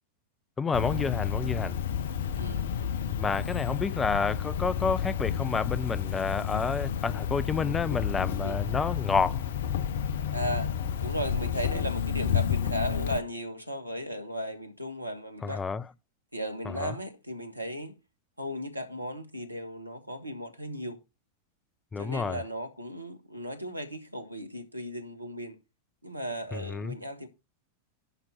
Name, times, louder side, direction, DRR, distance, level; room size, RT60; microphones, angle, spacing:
voice 1, 0.6-1.8 3.2-9.4 15.4-15.8 16.8-17.0 21.9-22.4 26.5-27.0, left 5 dB, 15° left, 0.6 m, -29 dB
Cricket, 0.7-13.2, left 8 dB, 60° left, 0.9 m, -30 dB
voice 2, 2.4-2.7 8.4-8.6 10.3-10.7 11.0-15.6 16.3-17.9 18.4-21.0 22.0-25.6 26.0-27.3, equal, 85° right, 1.6 m, -36 dB
11.0 x 6.0 x 4.3 m
figure-of-eight pair, 90°, 0 cm